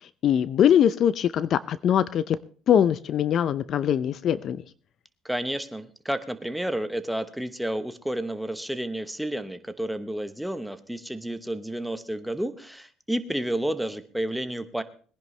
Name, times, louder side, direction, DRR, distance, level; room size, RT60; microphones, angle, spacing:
voice 1, 0.2-2.4 2.7-4.6, left 9 dB, 50° left, 17 dB, 0.5 m, -22 dB
voice 2, 5.2-14.8, right 1 dB, ahead, 10 dB, 1.1 m, -31 dB
21.0 x 10.5 x 3.3 m, 0.42 s
cardioid pair, 115°, 0 cm